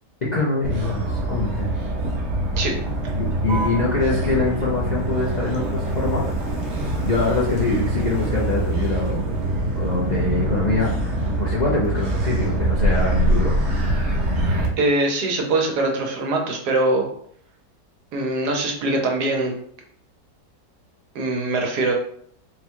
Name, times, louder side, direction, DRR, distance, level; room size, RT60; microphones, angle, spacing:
voice 1, 0.2-1.7 3.2-6.2 7.0-9.4 9.7-13.5, left 3 dB, 70° left, -4 dB, 0.4 m, -24 dB
Motor vehicle (road), 0.6-14.7, right 1 dB, 50° right, 1.0 m, -24 dB
voice 2, 14.8-17.1 18.1-19.5 21.1-21.9, right 2 dB, 70° right, 2 dB, 1.4 m, -22 dB
4.0 x 2.3 x 4.4 m, 0.62 s
omnidirectional pair, 1.8 m